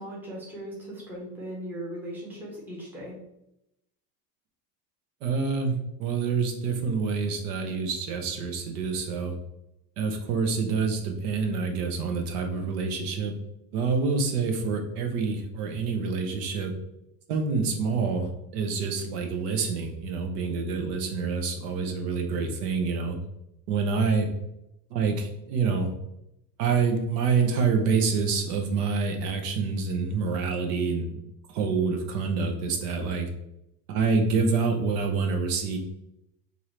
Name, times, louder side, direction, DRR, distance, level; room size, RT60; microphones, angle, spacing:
voice 1, 0.0-3.2, right 1 dB, 5° right, -6 dB, 0.8 m, -38 dB
voice 2, 5.2-9.3 10.0-13.3 13.7-16.7 17.3-23.2 23.7-24.3 24.9-25.9 26.6-31.2 31.5-33.3 33.9-35.8, right 5 dB, 75° right, 4 dB, 0.9 m, -27 dB
4.7 x 2.7 x 3.0 m, 0.85 s
cardioid pair, 170°, 47 cm